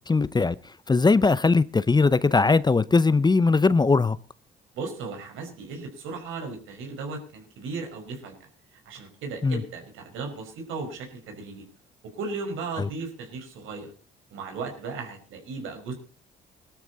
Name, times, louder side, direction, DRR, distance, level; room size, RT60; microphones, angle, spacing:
voice 1, 0.1-0.5 0.9-4.2 9.4-9.6, left 4 dB, 20° left, 0.7 m, -20 dB
voice 2, 4.7-8.5 8.9-11.7 12.1-13.9 14.3-15.9, right 4 dB, 90° right, 5.3 m, -36 dB
20.5 x 12.5 x 4.1 m
cardioid pair, 90°, 20 cm